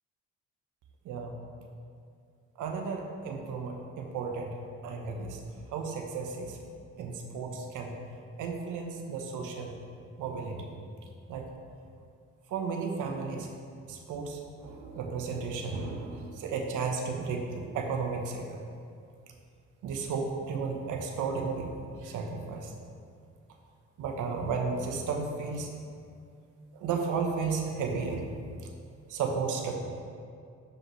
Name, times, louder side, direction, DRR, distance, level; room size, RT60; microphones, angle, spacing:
voice 1, 2.6-4.6 4.8-5.4 5.7-6.6 7.0-7.9 8.4-9.7 10.2-10.7 11.3-11.4 12.5-13.5 13.9-18.6 19.8-21.7 22.0-22.7 24.0-25.7 26.7-28.2 29.1-29.8, right 5 dB, 85° right, 3 dB, 1.1 m, -33 dB
12.5 x 5.1 x 3.2 m, 2.4 s
cardioid pair, 90°, 30 cm